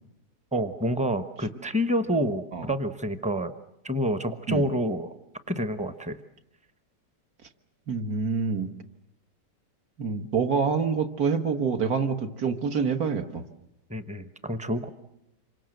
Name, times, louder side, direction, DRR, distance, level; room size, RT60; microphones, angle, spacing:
voice 1, 0.5-3.5 3.8-5.1 5.5-6.2 13.9-14.9, equal, 5° right, 11 dB, 0.9 m, -28 dB
voice 2, 7.9-8.7 10.0-13.4, right 5 dB, 60° right, 6 dB, 1.9 m, -26 dB
27.0 x 24.5 x 7.9 m, 0.82 s
omnidirectional pair, 1.9 m